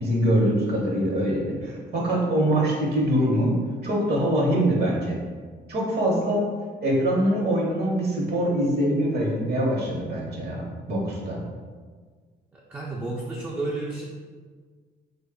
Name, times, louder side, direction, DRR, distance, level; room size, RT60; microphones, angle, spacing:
voice 1, 0.0-3.5 3.8-5.2 5.7-6.4 6.8-11.4, right 1 dB, 55° right, -2 dB, 0.9 m, -23 dB
voice 2, 12.5-14.0, right 2 dB, 10° right, -4 dB, 0.4 m, -31 dB
3.1 x 2.2 x 3.6 m, 1.5 s
cardioid pair, 90°, 20 cm